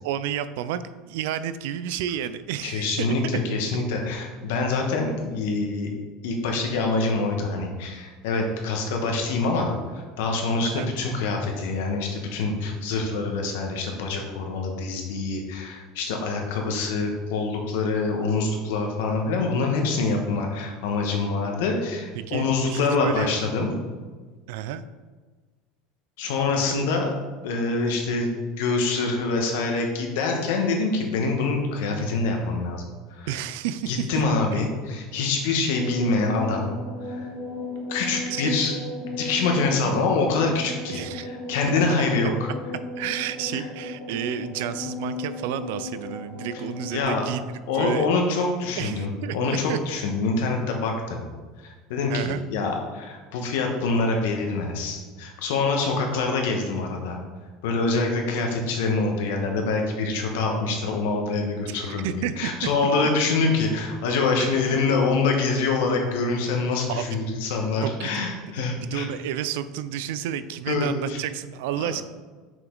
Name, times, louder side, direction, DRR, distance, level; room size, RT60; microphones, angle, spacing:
voice 1, 0.0-3.1 3.5-3.8 10.6-10.9 22.1-23.3 24.5-24.8 26.5-26.8 33.3-34.1 34.5-34.6 38.0-38.6 40.9-41.3 43.0-47.4 47.7-48.1 48.8-49.8 52.1-52.4 61.7-62.7 64.4-64.5 66.9-67.0 67.8-68.5 68.8-72.0, right 10 dB, 70° right, 13 dB, 0.3 m, -31 dB
voice 2, 2.6-5.9 6.2-23.7 26.2-27.1 27.4-28.3 28.6-32.8 33.2-33.4 33.9-36.7 37.0-37.3 37.9-38.7 39.0-42.5 43.5-43.6 46.9-47.2 47.7-51.2 51.6-57.2 57.6-69.1 70.7-71.2 71.8-71.9, left 3 dB, 80° left, 2 dB, 1.3 m, -25 dB
sound 1, 35.7-47.0, left 2 dB, 10° left, 1.6 m, -35 dB
6.2 x 4.9 x 3.9 m, 1.4 s
cardioid pair, 170°, 0 cm